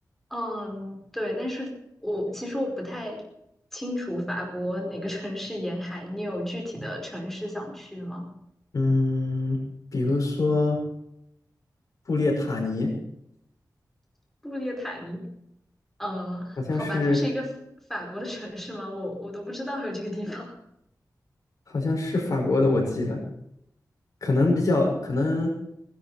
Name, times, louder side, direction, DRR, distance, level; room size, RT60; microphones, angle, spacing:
voice 1, 0.3-1.7 2.0-3.2 3.7-8.3 14.4-15.3 16.0-17.5 17.9-20.5 25.0-25.1, left 1 dB, 5° left, 0 dB, 5.0 m, -32 dB
voice 2, 8.7-9.6 9.9-10.8 12.1-12.9 16.6-17.2 21.7-23.2 24.2-25.5, left 2 dB, 60° left, 0 dB, 5.9 m, -24 dB
19.0 x 11.5 x 5.8 m, 0.77 s
wide cardioid pair, 125°, 7 cm